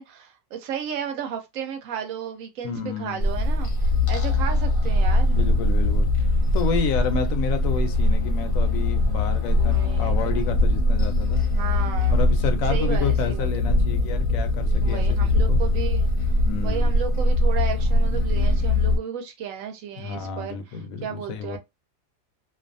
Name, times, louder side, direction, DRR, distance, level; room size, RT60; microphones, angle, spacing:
voice 1, 0.0-5.4 9.5-10.2 11.2-12.2 12.7-13.7 14.8-16.1 16.6-21.6, right 8 dB, 80° right, 1.0 m, -34 dB
voice 2, 2.6-3.3 5.3-6.1 6.5-11.4 12.1-15.6 16.4-16.9 20.0-21.6, left 5 dB, 80° left, 1.0 m, -30 dB
sound 1, 3.2-19.0, left 2 dB, 50° left, 0.8 m, -21 dB
2.6 x 2.4 x 2.5 m
omnidirectional pair, 1.4 m